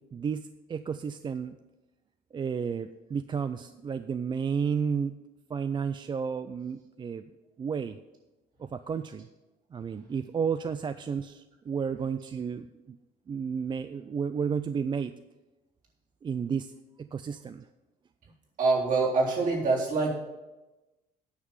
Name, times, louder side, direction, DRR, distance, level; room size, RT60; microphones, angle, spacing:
voice 1, 0.1-1.6 2.3-5.1 5.5-7.2 7.6-8.0 8.6-9.3 9.7-13.0 13.3-15.1 16.2-16.7 17.0-17.6, right 6 dB, 30° right, 11 dB, 0.4 m, -32 dB
voice 2, 18.6-20.1, right 3 dB, 55° right, -4 dB, 3.7 m, -25 dB
9.6 x 5.9 x 8.0 m, 1.1 s
cardioid pair, 110°, 17 cm